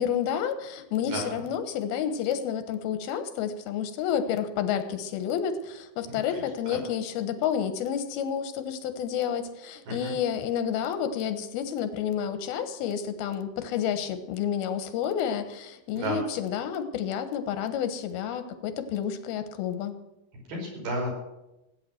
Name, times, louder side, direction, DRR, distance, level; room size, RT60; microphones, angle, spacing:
voice 1, 0.0-19.9, left 8 dB, 85° left, 10 dB, 3.1 m, -30 dB
voice 2, 20.5-21.1, right 1 dB, 85° right, -1 dB, 6.9 m, -31 dB
17.0 x 8.9 x 7.7 m, 0.93 s
omnidirectional pair, 4.3 m